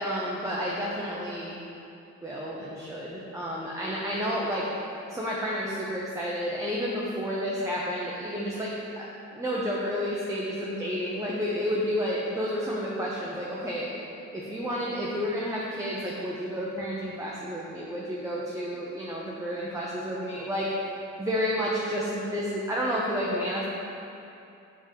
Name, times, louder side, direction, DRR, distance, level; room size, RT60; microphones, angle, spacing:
voice 1, 0.0-1.6 2.2-4.7 5.1-13.9 14.3-20.7 21.2-23.7, equal, 10° right, -5 dB, 0.7 m, -31 dB
5.1 x 3.8 x 5.1 m, 2.7 s
cardioid pair, 90°, 30 cm